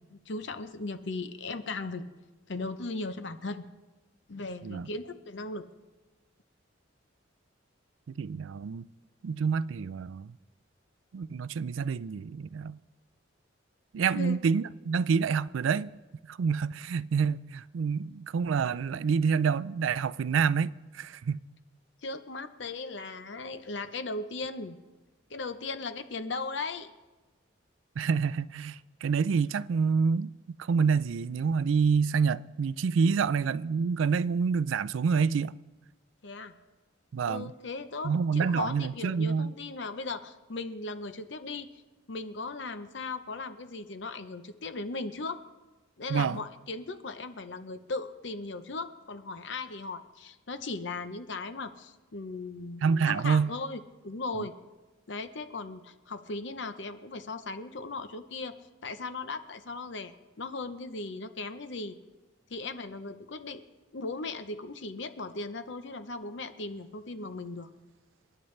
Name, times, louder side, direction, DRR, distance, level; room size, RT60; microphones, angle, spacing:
voice 1, 0.1-2.0 2.5-3.7 4.3-5.6 14.1-14.4 22.0-24.8 25.3-26.9 33.2-33.3 36.2-36.5 37.2-41.7 42.1-45.4 46.0-54.5 55.1-58.6 58.8-62.0 62.5-63.6 63.9-67.7, left 3 dB, 60° left, 0.7 m, -37 dB
voice 2, 8.1-8.8 9.2-10.4 11.1-12.8 13.9-15.9 16.3-21.4 28.0-30.3 30.6-35.6 37.1-37.5 38.0-39.5 46.1-46.4 52.8-53.5 54.4-54.5, right 5 dB, 75° right, 0.4 m, -27 dB
30.0 x 10.0 x 3.2 m
head